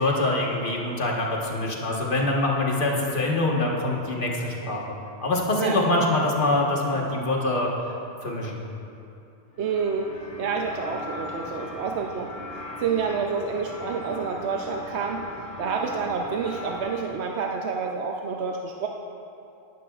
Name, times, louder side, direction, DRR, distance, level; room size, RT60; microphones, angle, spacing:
voice 1, 0.0-4.8 5.2-7.7 8.2-8.6, left 2 dB, 50° left, -2 dB, 1.6 m, -24 dB
sound 1, 9.5-17.1, left 1 dB, 90° left, 2.7 m, -39 dB
voice 2, 9.6-10.1 10.4-12.3 12.8-15.2 15.6-18.9, right 5 dB, 80° right, 1 dB, 0.9 m, -28 dB
17.0 x 11.5 x 2.4 m, 2.7 s
omnidirectional pair, 1.1 m